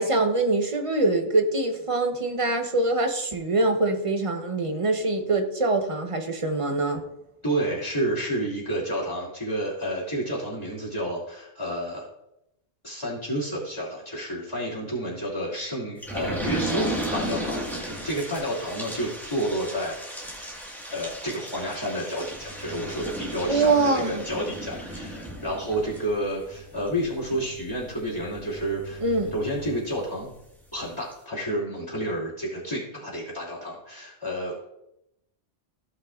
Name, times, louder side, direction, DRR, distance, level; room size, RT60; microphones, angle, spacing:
voice 1, 0.0-7.0 23.4-24.2 29.0-29.3, right 2 dB, 30° right, 5 dB, 0.9 m, -24 dB
voice 2, 7.4-12.1 12.8-20.5 20.9-29.0 29.3-30.3 30.7-34.6, right 1 dB, 25° left, -6 dB, 2.8 m, -30 dB
sound 1, 16.0-30.3 30.7-30.8 31.1-31.2, equal, ahead, 1.6 m, -35 dB
16.0 x 5.5 x 2.5 m, 0.84 s
omnidirectional pair, 1.2 m